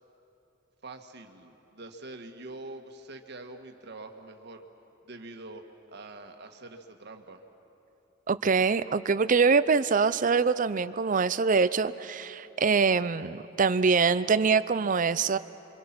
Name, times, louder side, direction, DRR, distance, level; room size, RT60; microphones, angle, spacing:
voice 1, 0.8-4.6 5.0-7.4, right 2 dB, 60° right, 4 dB, 1.6 m, -45 dB
voice 2, 8.3-15.4, right 5 dB, 45° right, 15 dB, 0.5 m, -24 dB
28.5 x 24.5 x 6.0 m, 2.9 s
head